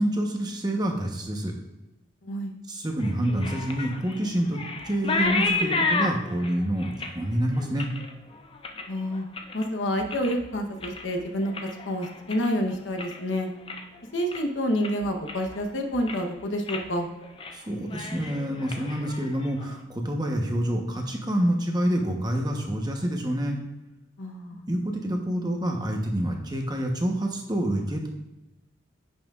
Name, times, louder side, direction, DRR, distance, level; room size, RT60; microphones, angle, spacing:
voice 1, 0.0-1.5 2.7-7.9 17.5-23.6 24.5-28.1, right 1 dB, 20° right, 2 dB, 0.9 m, -27 dB
voice 2, 2.2-2.5 8.9-9.3 9.5-11.5 11.9-13.5 14.1-17.1 24.2-24.6, equal, 70° left, 4 dB, 0.9 m, -28 dB
sound 1, 3.0-9.7 10.0-10.5 10.8-13.2 13.5-14.0 14.3-14.4 14.8-15.6 15.9-16.3 16.7-16.9 17.2-17.6 17.8-19.7, left 3 dB, 25° left, 0.5 m, -32 dB
10.5 x 5.7 x 2.4 m, 0.98 s
head